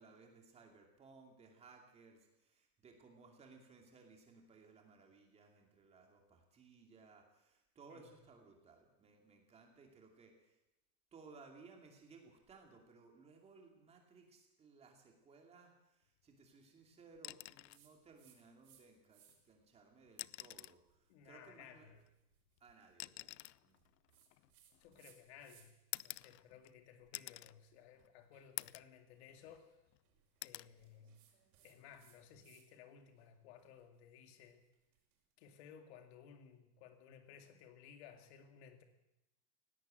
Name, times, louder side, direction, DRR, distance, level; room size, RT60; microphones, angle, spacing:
voice 1, 0.0-10.6 11.1-21.9 22.6-23.3 23.6-23.8, right 4 dB, 15° right, 2 dB, 2.7 m, -61 dB
sound 1, 17.2-17.9 19.3-19.4 20.1-20.9 22.0-25.1 25.9-26.8 27.1-27.6 28.0-28.1 28.6-29.0 29.4-30.0 30.4-30.7 32.2-32.4, left 17 dB, 80° left, 0.7 m, -49 dB
sound 2, 17.7-18.8 19.1-19.6 20.1-25.9 26.2-32.7 33.0-35.2, right 10 dB, 60° right, 6.1 m, -71 dB
voice 2, 21.1-22.0 24.8-25.8 26.0-29.7 30.4-31.2 31.6-34.7 35.4-38.8, left 8 dB, 40° left, 7 dB, 2.4 m, -58 dB
19.5 x 17.5 x 7.8 m, 0.89 s
supercardioid pair, 175°, 48 cm